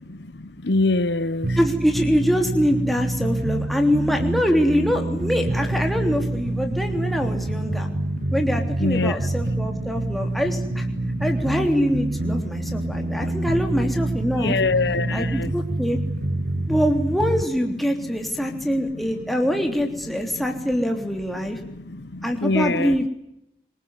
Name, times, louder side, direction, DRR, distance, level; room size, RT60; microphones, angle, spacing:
voice 1, 0.7-1.5 8.8-9.1 14.4-15.5 22.4-23.0, left 3 dB, 75° left, 1.0 m, -22 dB
sound 1, 1.4-17.4, right 2 dB, 50° right, 1.0 m, -26 dB
voice 2, 1.5-7.9 8.3-10.9 11.2-14.6 15.1-16.0 16.7-21.6 22.2-23.1, equal, ahead, 3.3 m, -24 dB
25.5 x 23.0 x 9.8 m
head